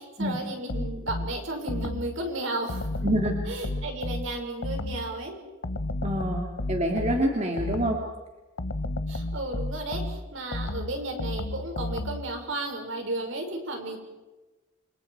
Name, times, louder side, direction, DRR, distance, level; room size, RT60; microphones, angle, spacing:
voice 1, 0.0-3.0 3.5-5.4 9.1-14.0, right 2 dB, 65° right, 3 dB, 5.6 m, -34 dB
sound 1, 0.7-2.2 2.7-5.2 5.6-8.1 8.6-12.4, left 2 dB, 70° left, 1.1 m, -32 dB
voice 2, 3.0-3.4 6.0-8.0, right 1 dB, 30° right, 0 dB, 2.6 m, -26 dB
29.0 x 27.0 x 4.8 m, 1.2 s
head